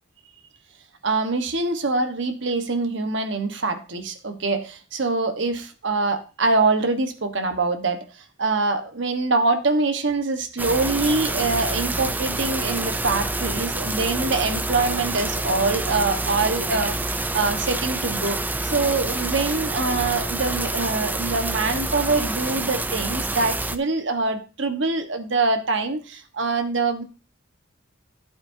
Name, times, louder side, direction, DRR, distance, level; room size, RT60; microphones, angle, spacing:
voice 1, 1.0-18.4 18.6-27.0, right 3 dB, 65° right, 7 dB, 1.3 m, -24 dB
sound 1, 10.6-23.8, right 2 dB, 10° right, 0.4 m, -27 dB
11.0 x 8.6 x 2.7 m, 0.34 s
head